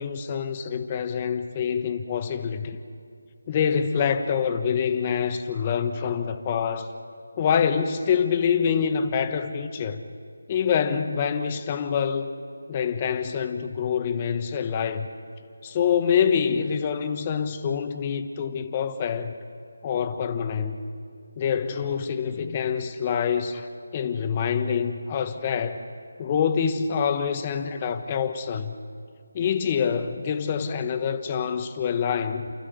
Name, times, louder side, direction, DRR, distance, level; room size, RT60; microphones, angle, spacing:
voice 1, 0.0-2.8 3.5-6.9 7.4-10.0 10.5-12.4 12.7-15.1 15.6-19.4 19.8-20.8 21.4-23.7 23.9-25.8 26.2-28.8 29.3-32.5, left 7 dB, 25° left, 1.2 m, -26 dB
28.5 x 14.5 x 8.3 m
figure-of-eight pair, 155°, 0 cm